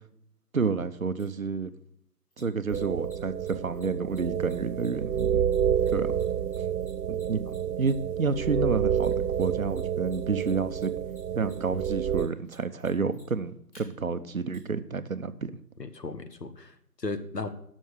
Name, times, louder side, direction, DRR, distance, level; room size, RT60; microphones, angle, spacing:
voice 1, 0.5-1.7 2.4-5.4 5.9-6.1 7.1-7.4 7.8-10.9 11.3-15.5, right 4 dB, 55° right, 11 dB, 0.9 m, -30 dB
Mechanisms, 1.2-1.3 2.3-8.2 9.0-9.8 10.0-13.8 14.5-14.6, left 1 dB, 25° left, 3.6 m, -57 dB
sound 1, 2.7-12.3, right 8 dB, 75° right, 0.6 m, -29 dB
voice 2, 15.8-17.5, left 3 dB, 80° left, 9 dB, 1.5 m, -36 dB
12.0 x 6.4 x 6.4 m, 0.70 s
figure-of-eight pair, 160°, 48 cm